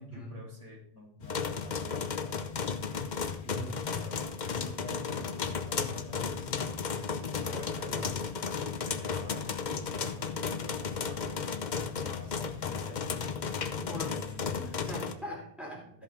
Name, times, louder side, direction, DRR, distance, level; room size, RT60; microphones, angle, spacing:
voice 1, 0.0-3.3 3.8-6.8 7.3-8.1 8.4-13.2 13.9-14.7 15.2-15.4 15.8-16.0, equal, 25° left, -6 dB, 2.4 m, -49 dB
sound 1, 1.2-15.1, left 6 dB, 45° left, 0.8 m, -34 dB
voice 2, 3.5-3.8 7.3-8.2 13.7-14.2 14.6-16.0, right 1 dB, ahead, -2 dB, 2.8 m, -42 dB
13.5 x 5.3 x 4.9 m, 0.67 s
omnidirectional pair, 1.2 m